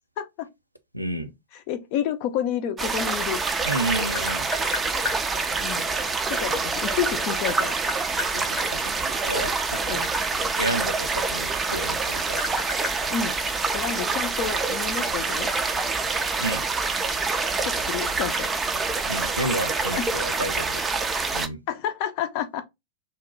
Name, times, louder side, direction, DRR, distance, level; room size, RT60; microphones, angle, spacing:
voice 1, 0.2-0.5 1.5-3.4 5.6-5.9 6.3-7.7 9.9-10.1 13.1-13.4 13.7-15.5 17.6-18.5 20.0-20.1 21.7-22.6, left 9 dB, 45° left, 0.5 m, -29 dB
voice 2, 0.9-1.3 3.6-4.5 8.3-9.5 9.9-10.0 10.6-12.4 16.4-16.6 19.1-21.0 21.3-21.6, right 1 dB, 90° right, 0.5 m, -31 dB
sound 1, 2.8-21.5, right 4 dB, 15° right, 0.4 m, -26 dB
Tap, 3.9-5.2 6.5-8.7 9.4-11.6 11.9-13.9, left 4 dB, 15° left, 0.8 m, -34 dB
2.7 x 2.2 x 3.8 m
figure-of-eight pair, 90°, 0 cm